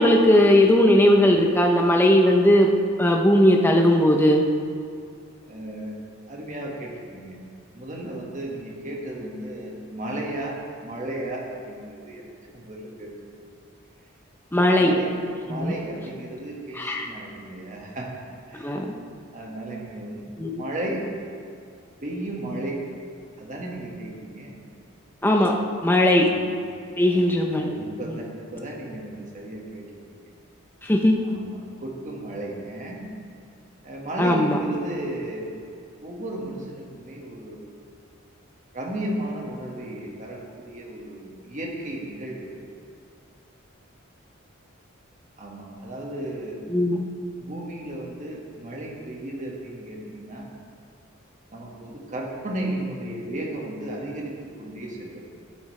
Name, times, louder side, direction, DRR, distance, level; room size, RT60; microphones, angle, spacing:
voice 1, 0.0-2.7 3.0-4.4 14.5-14.9 15.5-15.7 16.8-17.0 18.6-18.9 20.4-20.6 25.2-25.5 25.8-26.3 27.0-27.7 30.8-31.2 34.2-34.6 46.7-47.1, left 1 dB, 10° left, 1 dB, 0.6 m, -18 dB
voice 2, 5.4-7.4 7.7-13.3 14.7-15.2 15.4-18.1 18.5-18.8 19.3-21.0 22.0-22.8 23.4-24.6 26.2-26.4 27.0-29.9 30.1-30.3 31.2-33.0 33.8-35.5 36.0-37.7 38.7-42.5 45.4-46.6 47.4-50.5 51.5-55.2, right 1 dB, 40° right, -2 dB, 1.6 m, -34 dB
12.0 x 8.3 x 3.2 m, 2.4 s
head